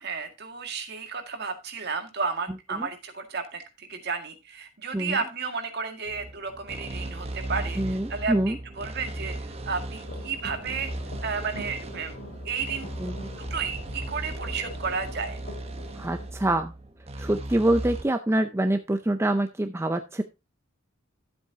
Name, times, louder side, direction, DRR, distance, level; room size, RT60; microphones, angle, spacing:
voice 1, 0.0-9.4 9.6-10.9 11.2-12.2 12.5-12.9 13.5-15.4, right 5 dB, 50° right, 6 dB, 1.9 m, -32 dB
sound 1, 6.1-18.0, right 1 dB, 30° right, 1.1 m, -37 dB
voice 2, 7.8-8.6 13.0-13.3 16.0-16.7 17.2-20.2, right 1 dB, 10° right, 7 dB, 0.5 m, -25 dB
sound 2, 10.0-16.3, left 1 dB, 55° left, 3.8 m, -44 dB
12.5 x 7.9 x 2.7 m, 0.25 s
head